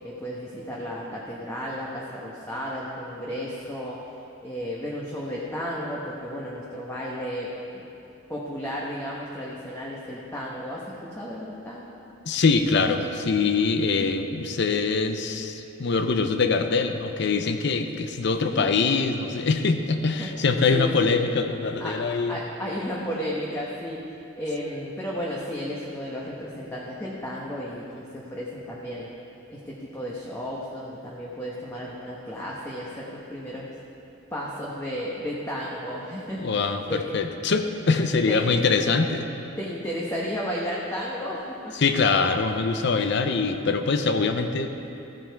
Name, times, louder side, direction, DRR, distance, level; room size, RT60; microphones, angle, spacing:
voice 1, 0.0-4.0 4.4-7.5 7.7-7.8 8.3-11.9 18.4-18.8 20.2-20.3 20.7-21.0 21.8-22.0 22.3-24.0 24.4-29.1 29.5-33.7 34.3-37.0 38.3-38.5 39.6-41.7, equal, 15° left, -5 dB, 1.1 m, -33 dB
voice 2, 12.2-22.4 36.4-39.3 41.7-44.7, left 4 dB, 65° left, 7 dB, 0.6 m, -23 dB
15.5 x 7.5 x 4.6 m, 2.9 s
head